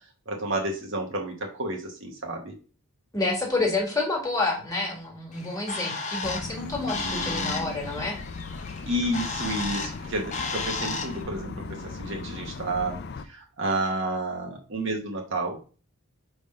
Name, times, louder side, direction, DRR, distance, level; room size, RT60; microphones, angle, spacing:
voice 1, 0.3-2.5 6.9-7.8 8.9-13.0 13.2-15.6, right 2 dB, 55° right, 0 dB, 1.0 m, -31 dB
voice 2, 3.1-8.2, left 2 dB, 15° left, 0 dB, 1.8 m, -28 dB
Bird, 5.3-11.2, left 4 dB, 30° left, 0.8 m, -34 dB
sound 1, 6.2-13.2, left 3 dB, 50° left, 0.4 m, -38 dB
5.0 x 3.6 x 5.3 m, 0.37 s
head